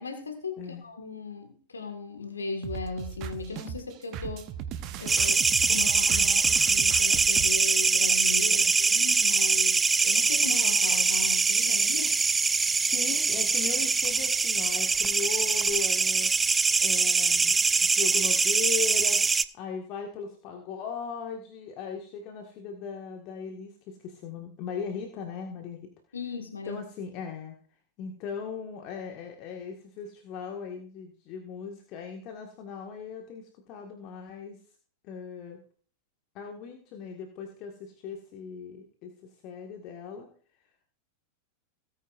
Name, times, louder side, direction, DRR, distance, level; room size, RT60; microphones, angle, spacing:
voice 1, 0.0-4.5 5.0-12.2 26.1-26.8, left 4 dB, 75° left, 6 dB, 1.7 m, -37 dB
sound 1, 2.6-7.5, right 9 dB, 40° right, 1.0 m, -37 dB
sound 2, 5.1-19.4, right 4 dB, 15° right, 0.4 m, -23 dB
voice 2, 12.7-16.3 16.8-25.9 26.7-27.6 28.0-34.6 35.0-35.6 36.4-40.3, left 6 dB, 40° left, 2 dB, 1.7 m, -38 dB
18.0 x 9.2 x 2.6 m, 0.43 s
figure-of-eight pair, 90°, 0 cm